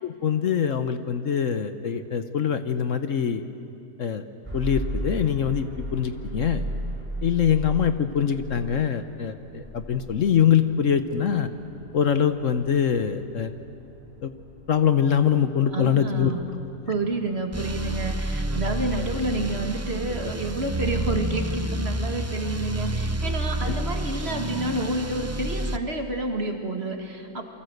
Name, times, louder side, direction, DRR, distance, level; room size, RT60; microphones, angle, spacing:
voice 1, 0.0-3.4 4.0-4.3 4.5-6.7 7.2-11.5 11.9-13.5 14.2-14.3 14.7-16.3, left 8 dB, 60° left, 10 dB, 1.3 m, -23 dB
sound 1, 4.4-20.4, right 1 dB, 5° right, 8.0 m, -37 dB
voice 2, 15.7-16.5 16.9-27.4, right 2 dB, 45° right, 4 dB, 2.3 m, -29 dB
sound 2, 17.5-25.8, right 1 dB, 25° right, 0.3 m, -29 dB
28.5 x 24.0 x 8.0 m, 2.7 s
omnidirectional pair, 1.6 m